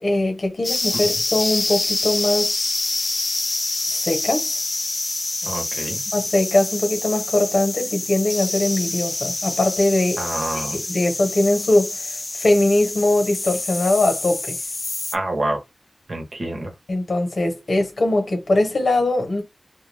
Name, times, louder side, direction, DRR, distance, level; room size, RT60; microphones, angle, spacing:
voice 1, 0.0-2.5 3.9-4.5 6.1-10.2 10.5-12.0 12.3-14.6 16.9-19.4, left 2 dB, 90° left, 0.9 m, -21 dB
sound 1, 0.6-15.2, left 2 dB, 45° left, 0.4 m, -26 dB
voice 2, 5.4-6.0 10.2-10.8 15.1-15.6 16.1-16.7, right 1 dB, 70° right, 1.0 m, -27 dB
2.3 x 2.2 x 3.3 m
wide cardioid pair, 75°, 0 cm